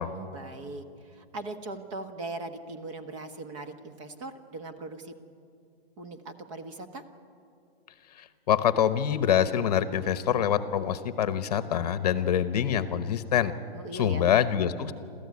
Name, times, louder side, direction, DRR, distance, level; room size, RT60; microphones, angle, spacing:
voice 1, 0.1-5.1 6.0-7.0 13.7-14.3, right 2 dB, 30° right, 7 dB, 1.4 m, -40 dB
voice 2, 8.1-13.5 13.9-14.9, left 9 dB, 40° left, 12 dB, 1.0 m, -25 dB
27.5 x 14.0 x 9.7 m, 2.5 s
hypercardioid pair, 165°, 30 cm